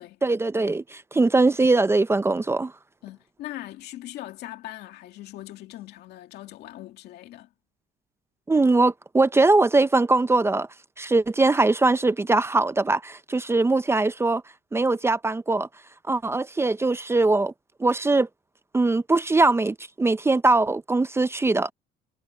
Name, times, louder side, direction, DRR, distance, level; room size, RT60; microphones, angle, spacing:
voice 1, 0.2-2.7 8.5-10.7 11.0-14.4 14.7-15.7 16.1-17.5 17.8-18.3 18.7-21.7, right 3 dB, 15° right, 0.6 m, -21 dB
voice 2, 3.0-7.5, left 14 dB, 80° left, 2.4 m, -40 dB
cardioid pair, 110°, 17 cm